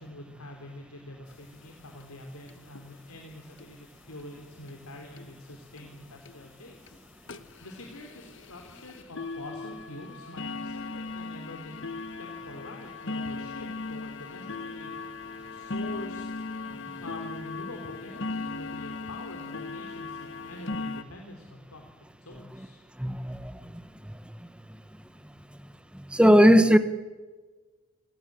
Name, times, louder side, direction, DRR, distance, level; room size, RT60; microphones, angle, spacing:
voice 1, 0.0-7.0 7.6-11.8 12.2-14.9 15.2-16.3 17.0-21.9 22.2-22.8, left 1 dB, 90° left, 2 dB, 3.3 m, -45 dB
sound 1, 1.3-1.4 1.7-1.8 2.0-2.1 2.5-2.8 3.6-3.7 4.2-4.3 4.7-4.8 5.2-5.3 5.8-5.9 6.3-6.4 6.9-7.0 7.3-21.0, left 3 dB, 55° left, 1.2 m, -38 dB
voice 2, 23.0-24.2 25.9-26.8, equal, 5° right, 12 dB, 1.0 m, -20 dB
27.5 x 19.0 x 7.5 m, 1.3 s
head